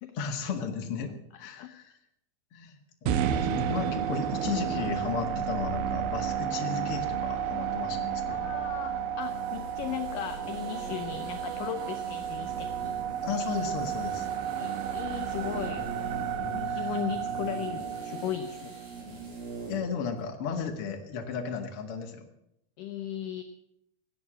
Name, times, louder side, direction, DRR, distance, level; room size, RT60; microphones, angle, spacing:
voice 1, 0.1-1.1 1.4-2.0 2.5-8.5 13.2-14.3 16.7-16.9 19.7-22.3, left 6 dB, 45° left, 4 dB, 1.9 m, -34 dB
sound 1, 3.1-19.2, right 8 dB, 80° right, 2.6 m, -32 dB
voice 2, 8.3-13.6 14.6-15.9 16.5-18.8 22.8-23.4, left 10 dB, 75° left, 7 dB, 2.1 m, -37 dB
sound 2, 9.2-19.9 20.2-20.3, right 3 dB, 60° right, 6.3 m, -43 dB
18.5 x 8.6 x 7.5 m, 0.80 s
omnidirectional pair, 4.6 m